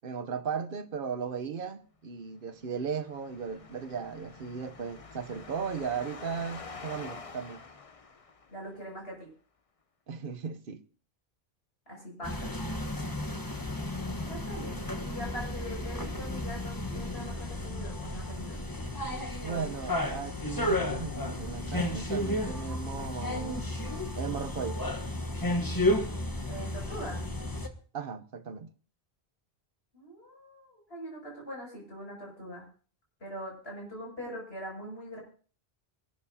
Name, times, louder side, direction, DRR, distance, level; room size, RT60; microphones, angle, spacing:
voice 1, 0.0-7.6 10.1-10.8 19.4-23.7 24.1-24.8 27.9-28.7, right 6 dB, 60° right, 1.0 m, -36 dB
sound 1, 2.5-8.8, left 4 dB, 35° left, 0.9 m, -47 dB
voice 2, 8.5-9.3 11.9-12.5 14.3-18.6 26.5-27.2 29.9-32.7 33.2-35.2, equal, 75° left, 7.2 m, -42 dB
sound 2, 12.2-27.7, left 1 dB, 20° left, 1.2 m, -33 dB
24.5 x 12.5 x 2.8 m
omnidirectional pair, 1.1 m